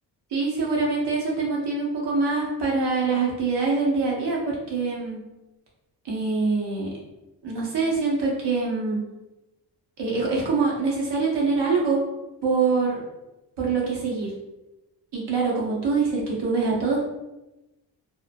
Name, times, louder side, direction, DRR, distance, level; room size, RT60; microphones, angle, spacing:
voice 1, 0.3-5.2 6.0-6.9 7.4-9.0 10.0-12.0 12.4-13.0 13.6-14.3 15.1-17.0, right 4 dB, 65° right, -4 dB, 1.1 m, -24 dB
3.0 x 2.1 x 2.5 m, 0.99 s
cardioid pair, 75°, 44 cm